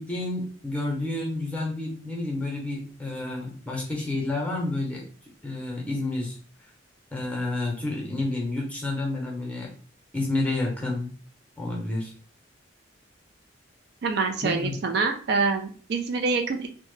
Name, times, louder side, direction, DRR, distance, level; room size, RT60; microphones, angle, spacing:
voice 1, 0.0-5.0 5.4-6.4 7.1-9.7 10.1-11.1 11.6-12.1 14.4-14.7, left 2 dB, 5° left, -2 dB, 0.8 m, -30 dB
voice 2, 14.0-16.7, right 4 dB, 55° right, 5 dB, 0.3 m, -26 dB
2.8 x 2.1 x 3.0 m, 0.42 s
head